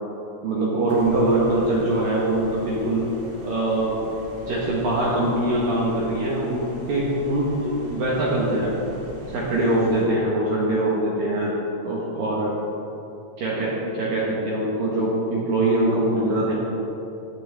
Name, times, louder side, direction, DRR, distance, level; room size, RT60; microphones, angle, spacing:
voice 1, 0.4-3.0 3.4-4.0 4.4-8.7 9.3-11.5 11.8-12.5 13.4-16.5, right 1 dB, 65° right, -5 dB, 2.3 m, -23 dB
sound 1, 0.9-10.0, equal, 45° right, 2.2 m, -42 dB
17.0 x 10.5 x 3.4 m, 3.0 s
omnidirectional pair, 6.0 m